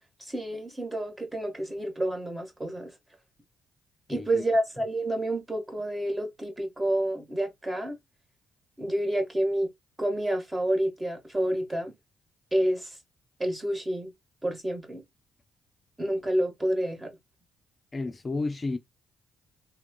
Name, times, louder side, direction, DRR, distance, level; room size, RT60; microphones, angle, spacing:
voice 1, 0.2-2.9 4.1-8.0 8.8-9.7 10.0-11.9 12.5-13.0 13.4-14.1 14.4-15.0 16.0-17.1, right 1 dB, 20° right, 1.3 m, -29 dB
voice 2, 4.1-4.4 17.9-18.8, left 3 dB, 35° left, 0.3 m, -31 dB
2.9 x 2.1 x 2.2 m
hypercardioid pair, 45°, 0 cm